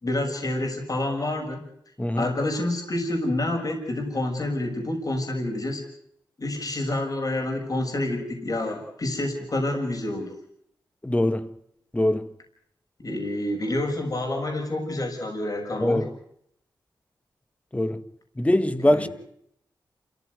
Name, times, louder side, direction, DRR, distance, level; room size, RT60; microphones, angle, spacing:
voice 1, 0.0-1.6 2.1-5.8 6.4-10.3 13.0-16.0 18.8-19.1, left 1 dB, 50° left, 6.4 m, -28 dB
voice 2, 2.0-2.3 11.0-11.5 11.9-12.3 15.8-16.1 17.7-18.0 18.4-19.1, left 1 dB, 15° left, 1.8 m, -22 dB
28.0 x 15.0 x 9.5 m
cardioid pair, 50°, 8 cm